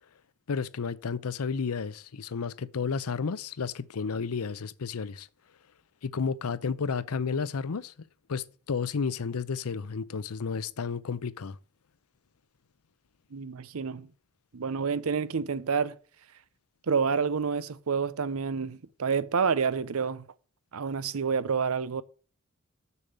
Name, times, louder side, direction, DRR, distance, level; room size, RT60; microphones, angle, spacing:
voice 1, 0.5-5.3 6.0-7.9 8.3-11.6, left 5 dB, 85° left, 0.6 m, -32 dB
voice 2, 13.3-14.1 14.5-16.0 16.9-20.3 20.7-22.0, right 5 dB, 75° right, 0.6 m, -28 dB
7.0 x 6.9 x 7.9 m
head